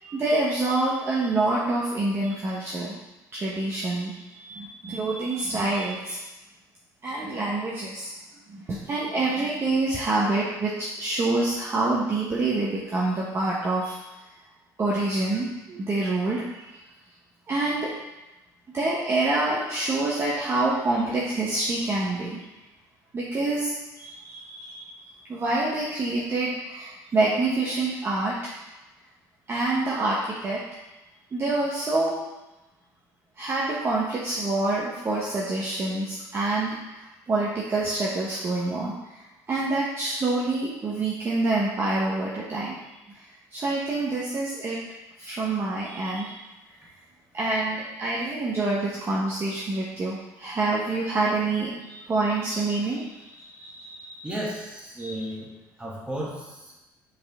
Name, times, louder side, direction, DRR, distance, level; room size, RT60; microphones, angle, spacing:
voice 1, 0.0-2.9 3.3-6.2 7.0-8.1 8.5-14.0 14.8-16.7 17.5-17.9 18.7-22.4 23.1-25.0 25.3-28.4 29.5-30.6 31.3-32.1 33.4-42.8 43.1-43.2 43.5-44.8 45.2-46.3 47.3-54.3 55.0-55.2, right 2 dB, 30° right, -6 dB, 1.1 m, -27 dB
voice 2, 54.2-55.5 55.8-56.7, right 1 dB, 15° right, -4 dB, 1.9 m, -34 dB
5.2 x 5.1 x 3.6 m, 1.0 s
supercardioid pair, 95°, 8 cm